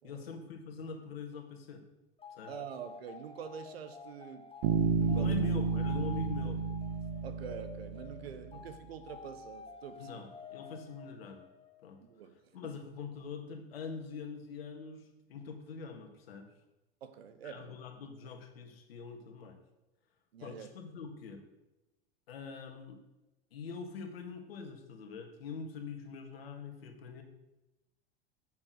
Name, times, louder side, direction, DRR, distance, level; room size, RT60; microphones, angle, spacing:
voice 1, 0.0-1.8 2.3-2.5 5.1-6.6 10.0-11.4 11.8-12.0 12.5-15.0 15.3-16.5 17.4-19.6 20.4-21.4 22.3-23.0 23.5-27.2, left 5 dB, 80° left, 5 dB, 1.6 m, -44 dB
sound 1, 2.2-12.0, left 6 dB, 20° left, 1.0 m, -51 dB
voice 2, 2.5-4.5 5.0-5.4 5.9-6.0 7.2-10.2 12.0-12.7 17.0-17.8 20.3-20.7, right 8 dB, 85° right, 10 dB, 1.0 m, -46 dB
Bass guitar, 4.6-8.3, right 5 dB, 65° right, 1.2 m, -31 dB
7.5 x 6.1 x 6.2 m, 0.99 s
hypercardioid pair, 95°, 30 cm